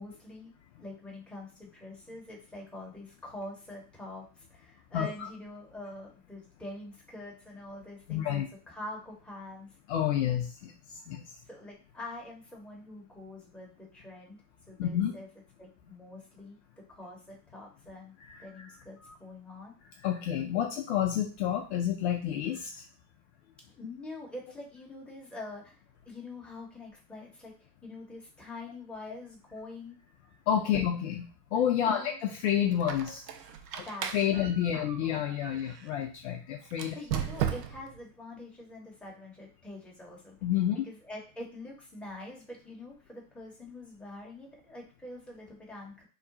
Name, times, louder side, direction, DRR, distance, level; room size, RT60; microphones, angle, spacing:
voice 1, 0.0-9.8 11.5-15.3 15.6-19.7 23.7-25.8 26.1-30.0 30.7-30.8 31.9-32.2 33.8-35.2 36.9-40.4 40.8-46.0, left 2 dB, ahead, -3 dB, 0.9 m, -45 dB
voice 2, 8.1-8.5 9.9-11.2 14.8-15.2 18.3-18.7 19.0-19.1 20.0-22.8 30.5-31.2 31.5-33.2 33.8-33.9 34.1-37.0 40.4-40.8, left 10 dB, 45° left, 2 dB, 0.5 m, -29 dB
Squeak, 32.7-35.9 36.7-38.0, right 9 dB, 80° right, 0.6 m, -36 dB
2.9 x 2.2 x 3.8 m, 0.35 s
hypercardioid pair, 100°, 49 cm